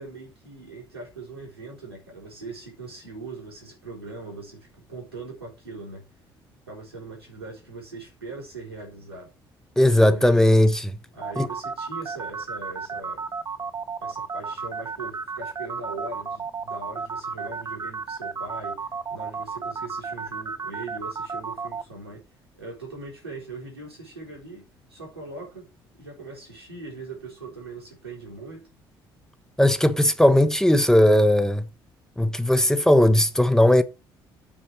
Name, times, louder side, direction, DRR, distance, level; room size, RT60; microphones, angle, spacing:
voice 1, 0.0-6.0 6.7-9.3 10.1-10.6 11.1-13.2 14.0-18.8 19.1-22.2 22.6-24.6 24.9-25.7 26.0-28.7, right 3 dB, 90° right, 4.0 m, -40 dB
voice 2, 9.8-10.9 11.4-11.5 29.6-31.7 32.2-33.8, left 1 dB, 5° left, 1.1 m, -18 dB
sound 1, 11.2-21.8, right 5 dB, 30° right, 0.8 m, -33 dB
8.6 x 4.5 x 7.1 m
figure-of-eight pair, 50°, 13 cm